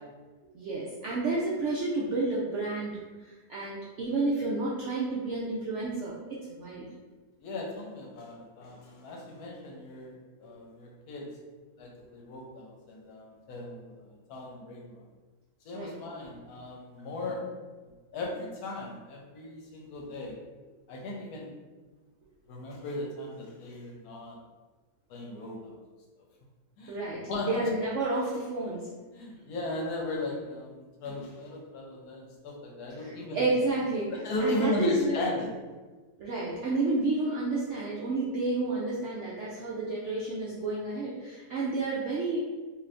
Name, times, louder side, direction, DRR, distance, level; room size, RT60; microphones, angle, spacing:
voice 1, 0.5-6.9 10.4-10.5 15.7-15.9 26.9-28.9 33.0-34.1 34.4-35.2 36.2-42.4, right 3 dB, 75° right, -6 dB, 0.7 m, -31 dB
voice 2, 7.4-11.4 11.8-15.0 15.6-17.6 18.1-20.4 20.9-21.5 22.5-24.4 25.1-25.7 26.8-27.0 27.3-27.7 29.1-33.6 34.1-35.5, left 2 dB, 75° left, -1 dB, 1.0 m, -36 dB
2.7 x 2.5 x 3.3 m, 1.3 s
omnidirectional pair, 1.7 m